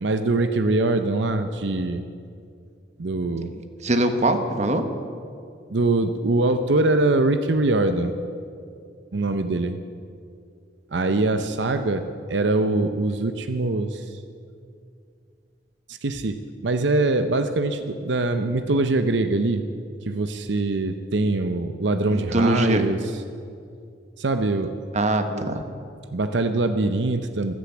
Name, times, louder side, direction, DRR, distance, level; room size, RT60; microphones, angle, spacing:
voice 1, 0.0-2.0 3.0-3.5 5.7-8.1 9.1-9.8 10.9-14.2 15.9-16.4 16.6-19.6 20.0-23.0 24.2-24.7 25.3-25.6 26.1-27.5, right 2 dB, 80° right, 8 dB, 0.7 m, -23 dB
voice 2, 3.8-4.8 22.1-22.8 24.9-25.6, right 1 dB, 40° right, 7 dB, 1.2 m, -22 dB
14.0 x 12.0 x 8.5 m, 2.4 s
head